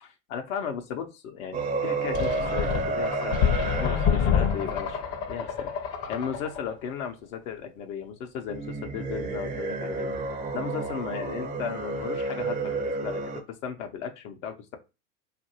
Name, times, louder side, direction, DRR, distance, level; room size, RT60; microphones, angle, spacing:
voice 1, 0.0-5.0 5.3-10.1 10.5-13.2 13.5-14.8, left 7 dB, 75° left, 4 dB, 0.7 m, -36 dB
sound 1, 1.5-6.3 8.5-13.4, right 3 dB, 20° right, 0.4 m, -31 dB
sound 2, 2.1-6.7, left 7 dB, 40° left, 0.6 m, -27 dB
2.7 x 2.5 x 2.7 m, 0.27 s
hypercardioid pair, 105°, 41 cm